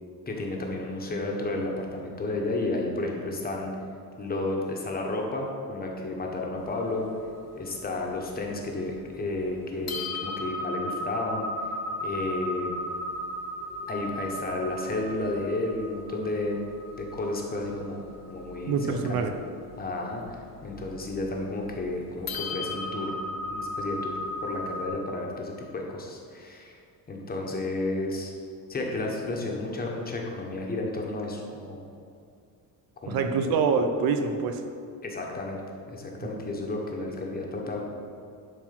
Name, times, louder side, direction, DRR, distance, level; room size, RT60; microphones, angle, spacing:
voice 1, 0.3-3.7 4.2-7.0 7.5-11.4 12.0-12.7 13.9-16.6 17.0-18.8 19.1-19.3 19.8-23.1 23.5-24.1 24.4-26.8 27.1-28.3 28.7-31.9 33.0-33.5 35.0-35.6 35.9-37.9, left 2 dB, 25° left, 0 dB, 1.4 m, -32 dB
sound 1, 6.6-8.9 9.4-9.5 9.9-24.9, left 1 dB, 45° left, 1.4 m, -36 dB
voice 2, 18.7-19.3 33.1-34.6 36.2-36.6, right 5 dB, 80° right, 7 dB, 1.0 m, -26 dB
11.5 x 4.4 x 6.1 m, 2.4 s
cardioid pair, 150°, 35 cm